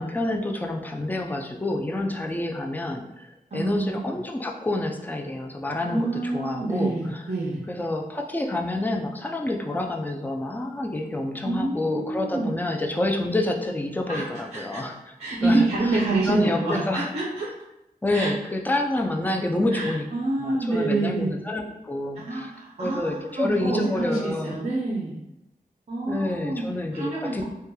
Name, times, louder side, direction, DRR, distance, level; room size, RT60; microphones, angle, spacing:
voice 1, 0.0-6.9 7.7-14.9 15.4-16.0 16.3-17.1 18.0-20.1 20.4-22.5 22.8-24.6 26.1-27.4, left 1 dB, 10° left, 2 dB, 0.3 m, -28 dB
voice 2, 3.5-4.0 5.8-7.6 11.4-12.5 14.1-14.8 15.2-17.5 18.1-18.3 19.2-19.3 19.7-21.4 22.2-25.2 25.9-26.7 26.9-27.4, right 2 dB, 45° right, -4 dB, 0.5 m, -27 dB
2.8 x 2.2 x 2.2 m, 0.92 s
wide cardioid pair, 55°, 16 cm